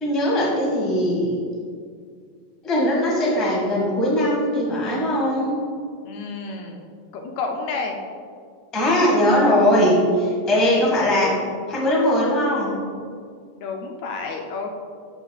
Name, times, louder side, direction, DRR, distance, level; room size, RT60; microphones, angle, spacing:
voice 1, 0.0-1.4 2.6-5.6 8.7-11.3 11.7-12.7, left 1 dB, ahead, -5 dB, 0.5 m, -20 dB
voice 2, 6.0-8.0 13.6-14.8, left 4 dB, 75° left, 2 dB, 1.8 m, -30 dB
12.5 x 4.5 x 2.3 m, 2.1 s
omnidirectional pair, 3.4 m